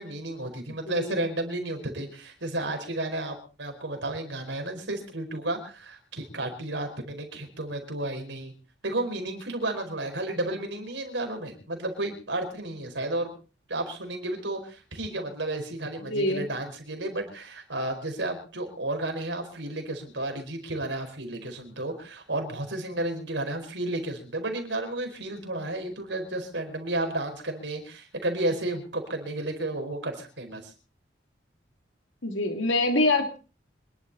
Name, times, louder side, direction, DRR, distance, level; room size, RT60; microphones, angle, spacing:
voice 1, 0.0-8.5 8.8-13.3 13.7-30.7, right 1 dB, 75° right, 4 dB, 4.8 m, -32 dB
voice 2, 16.1-16.4 32.2-33.4, left 2 dB, 90° left, 5 dB, 2.8 m, -25 dB
26.0 x 11.5 x 4.2 m, 0.36 s
head